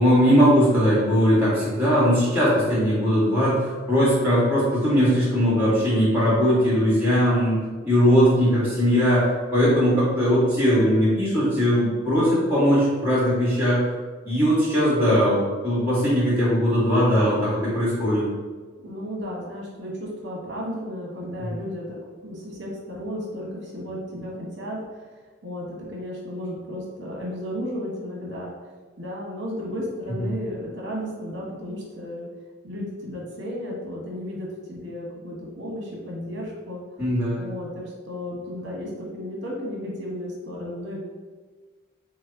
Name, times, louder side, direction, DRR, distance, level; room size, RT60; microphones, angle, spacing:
voice 1, 0.0-7.6 7.8-13.8 14.2-18.2 21.4-21.5 30.2-30.3 37.0-37.5, equal, 10° right, -8 dB, 1.4 m, -20 dB
voice 2, 18.8-24.8 25.4-28.5 29.0-32.3 32.6-36.8 37.4-41.0, equal, 55° right, -3 dB, 1.0 m, -34 dB
6.0 x 2.0 x 2.7 m, 1.4 s
head